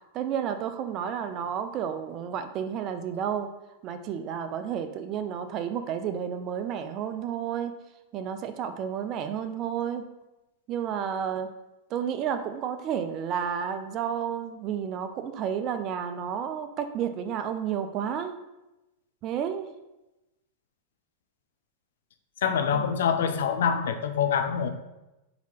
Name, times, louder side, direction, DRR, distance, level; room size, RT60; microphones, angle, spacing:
voice 1, 0.1-3.5 3.8-7.7 8.1-10.0 10.7-11.5 11.9-18.4 19.2-19.7 22.7-22.8, right 8 dB, 40° right, 9 dB, 0.4 m, -31 dB
voice 2, 22.4-24.7, left 7 dB, 75° left, 8 dB, 0.4 m, -25 dB
4.0 x 2.8 x 4.4 m, 0.98 s
hypercardioid pair, 110°, 0 cm